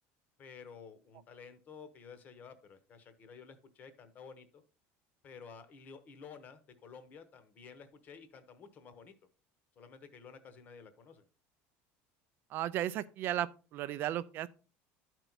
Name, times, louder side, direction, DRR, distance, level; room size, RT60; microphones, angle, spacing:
voice 1, 0.4-4.6 5.2-9.1 9.7-11.2, left 6 dB, 30° left, 1.0 m, -52 dB
voice 2, 12.5-14.5, right 12 dB, 40° right, 0.4 m, -35 dB
11.5 x 4.5 x 4.0 m
cardioid pair, 175°, 6 cm